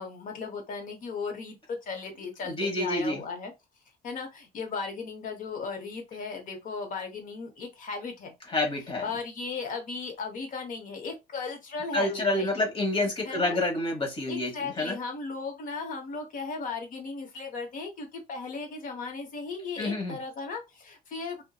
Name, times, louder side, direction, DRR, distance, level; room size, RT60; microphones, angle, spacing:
voice 1, 0.0-3.5 4.0-8.3 9.0-12.6 13.2-13.6 14.3-21.4, left 4 dB, 50° left, 0.9 m, -36 dB
voice 2, 2.5-3.2 8.5-9.0 11.9-15.0 19.8-20.2, left 2 dB, 35° left, 1.1 m, -28 dB
2.6 x 2.1 x 2.2 m
cardioid pair, 110°, 17 cm